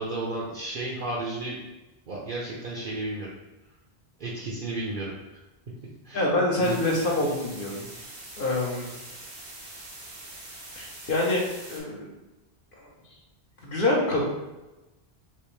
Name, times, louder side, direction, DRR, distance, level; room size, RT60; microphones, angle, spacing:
voice 1, 0.0-1.6 2.1-3.3 4.2-5.1 6.0-6.2 6.6-6.8, right 2 dB, 55° right, -5 dB, 0.7 m, -32 dB
voice 2, 6.1-7.9 8.4-9.0 10.7-11.4 11.7-12.1 12.8-12.9 13.6-14.3, left 1 dB, 55° left, -3 dB, 1.0 m, -26 dB
sound 1, 6.6-11.8, right 2 dB, 90° right, 1.2 m, -43 dB
3.3 x 3.0 x 3.1 m, 1.0 s
omnidirectional pair, 1.1 m